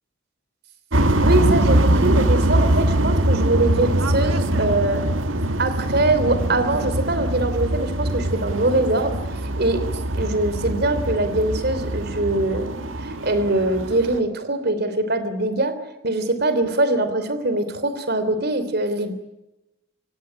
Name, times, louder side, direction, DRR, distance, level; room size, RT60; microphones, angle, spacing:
sound 1, 0.9-14.2, right 1 dB, 75° right, 1.6 m, -22 dB
voice 1, 1.2-5.1 5.6-9.2 9.6-9.8 10.1-15.8 16.0-19.1, right 2 dB, 55° right, 10 dB, 3.2 m, -22 dB
26.5 x 17.0 x 9.9 m, 0.96 s
head